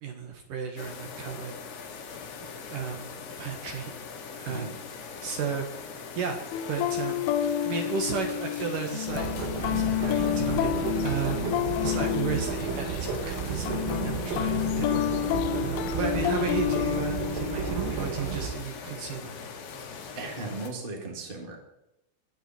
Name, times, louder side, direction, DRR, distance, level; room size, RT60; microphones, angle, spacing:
voice 1, 0.0-2.2 2.7-3.9 4.4-4.7 5.2-5.9 6.2-6.4 6.7-9.3 9.7-15.1 15.6-19.4, right 6 dB, 60° right, 3 dB, 2.4 m, -34 dB
sound 1, 0.8-20.7, left 5 dB, 70° left, 3.9 m, -41 dB
sound 2, 6.5-18.1, left 11 dB, 85° left, 3.2 m, -30 dB
sound 3, 9.1-18.5, right 4 dB, 80° right, 5.0 m, -33 dB
voice 2, 20.1-21.6, right 3 dB, 20° right, 2 dB, 1.3 m, -36 dB
22.0 x 9.3 x 4.5 m, 0.90 s
omnidirectional pair, 5.7 m